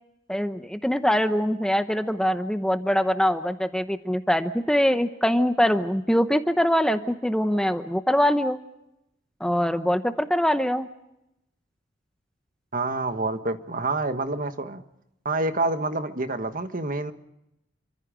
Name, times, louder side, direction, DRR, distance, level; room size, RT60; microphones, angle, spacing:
voice 1, 0.3-8.6 9.4-10.9, equal, 5° left, 8 dB, 0.8 m, -23 dB
voice 2, 12.7-14.8 15.2-17.1, right 2 dB, 45° right, 8 dB, 1.5 m, -27 dB
28.5 x 24.5 x 5.1 m, 0.85 s
head